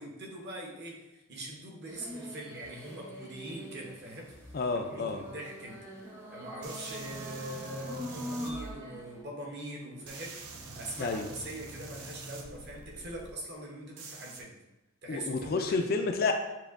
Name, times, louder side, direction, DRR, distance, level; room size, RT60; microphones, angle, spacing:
voice 1, 0.0-4.4 4.9-5.8 6.3-10.4 10.7-14.5 15.0-15.8, right 1 dB, 50° right, -2 dB, 0.9 m, -42 dB
sound 1, 1.9-9.2, equal, 10° right, 0.6 m, -43 dB
voice 2, 4.5-5.2 11.0-11.3 15.1-16.3, left 4 dB, 45° left, 5 dB, 0.3 m, -30 dB
sound 2, 6.6-8.7 10.0-13.3 14.0-14.4, right 2 dB, 85° right, 0.7 m, -44 dB
7.0 x 2.7 x 2.5 m, 1.0 s
head